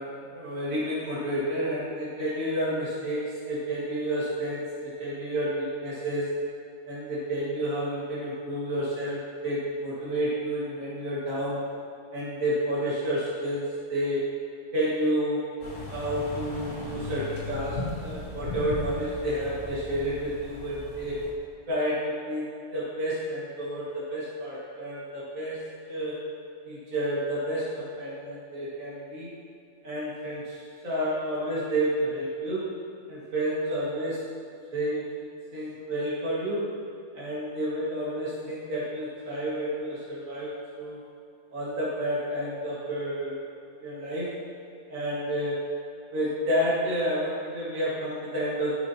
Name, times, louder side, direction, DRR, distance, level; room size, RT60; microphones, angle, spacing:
voice 1, 0.0-6.4 6.9-11.6 12.1-13.6 13.9-14.3 14.7-15.4 15.9-21.2 21.7-22.5 22.7-26.2 26.7-29.3 29.8-30.6 30.8-32.7 33.1-34.2 34.7-35.3 35.5-36.7 37.1-41.0 41.5-43.4 43.8-44.4 44.9-45.8 46.1-48.8, equal, 65° right, -9 dB, 2.4 m, -30 dB
sound 1, 15.6-21.3, left 2 dB, 50° left, 1.9 m, -37 dB
14.0 x 6.9 x 2.9 m, 2.5 s
omnidirectional pair, 1.5 m